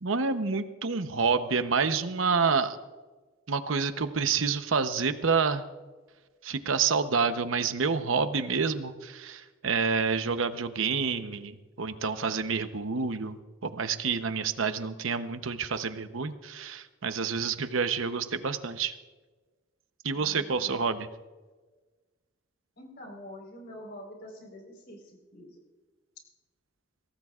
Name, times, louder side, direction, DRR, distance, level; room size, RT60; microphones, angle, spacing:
voice 1, 0.0-2.8 3.5-5.6 6.4-18.9 20.0-21.1, right 5 dB, 80° right, 10 dB, 0.9 m, -28 dB
voice 2, 20.1-20.8 22.8-25.6, left 1 dB, 55° left, 1 dB, 4.2 m, -46 dB
23.0 x 17.5 x 2.5 m, 1.3 s
head